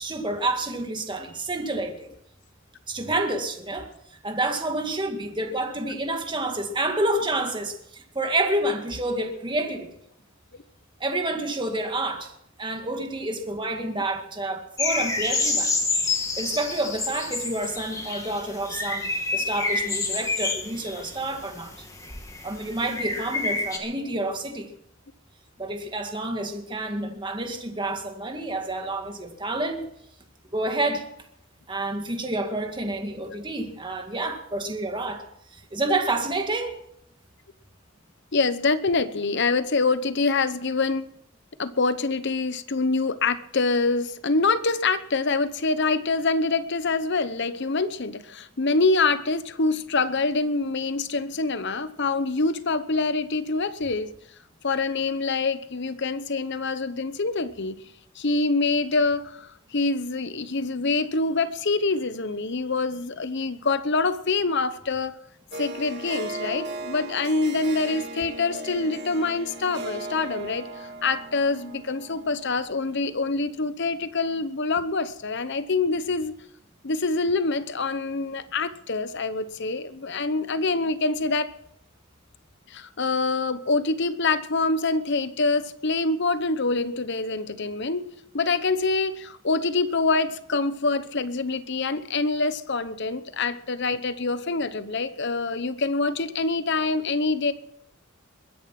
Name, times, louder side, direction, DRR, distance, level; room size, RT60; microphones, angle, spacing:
voice 1, 0.0-2.1 2.9-3.9 4.2-9.9 11.0-12.3 12.6-15.7 16.4-21.7 22.4-24.7 25.6-29.9 30.5-31.1 31.7-35.3 35.5-36.8, right 2 dB, 25° right, 2.0 m, -29 dB
sound 1, 14.8-23.8, left 3 dB, 15° left, 2.5 m, -28 dB
voice 2, 38.3-41.0 41.6-54.1 54.6-57.8 58.2-65.2 65.6-76.3 76.8-81.5 82.7-88.1 88.3-97.5, left 3 dB, 55° left, 1.0 m, -25 dB
Harp, 65.5-73.0, right 2 dB, 55° right, 2.0 m, -37 dB
22.0 x 10.0 x 6.0 m
head